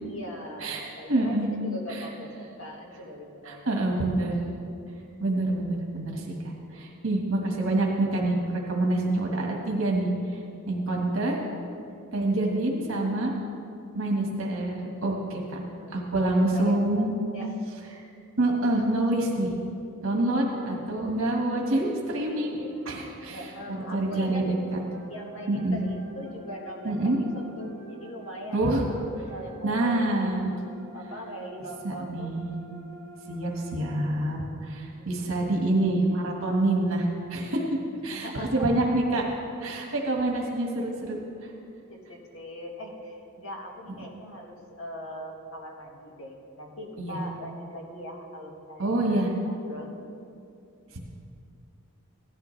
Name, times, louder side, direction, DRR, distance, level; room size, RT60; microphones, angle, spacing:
voice 1, 0.0-4.2 6.7-7.1 15.8-15.9 16.4-17.1 17.3-17.5 23.3-24.5 25.1-30.2 30.9-32.3 34.9-35.4 38.1-38.9 41.9-50.0, equal, 65° left, 0 dB, 1.8 m, -41 dB
voice 2, 1.1-1.5 1.9-2.0 3.4-4.4 5.2-10.1 10.7-11.4 12.1-13.3 13.9-15.6 15.9-17.1 17.9-18.0 18.4-19.5 20.0-23.4 23.9-24.5 25.5-25.8 26.8-27.2 28.5-28.8 29.6-30.6 31.8-32.5 33.3-37.8 38.0-39.2 39.6-41.5 47.0-47.2 48.8-49.3 50.9-51.0, right 2 dB, 70° right, -1 dB, 1.6 m, -26 dB
sound 1, 20.7-34.1, right 1 dB, 15° left, 1.4 m, -48 dB
16.5 x 11.5 x 3.3 m, 2.6 s
head